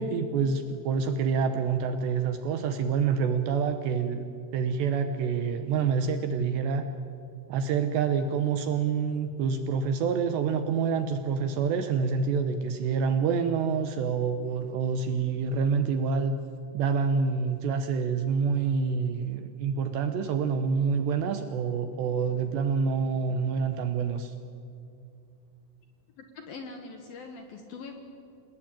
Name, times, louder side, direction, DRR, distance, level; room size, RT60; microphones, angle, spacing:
voice 1, 0.0-4.3 4.5-6.8 7.5-16.3 16.7-24.3, right 5 dB, 75° right, 8 dB, 2.7 m, -27 dB
voice 2, 26.2-28.0, left 4 dB, 60° left, 5 dB, 2.6 m, -42 dB
27.0 x 19.0 x 8.9 m, 2.5 s
omnidirectional pair, 5.9 m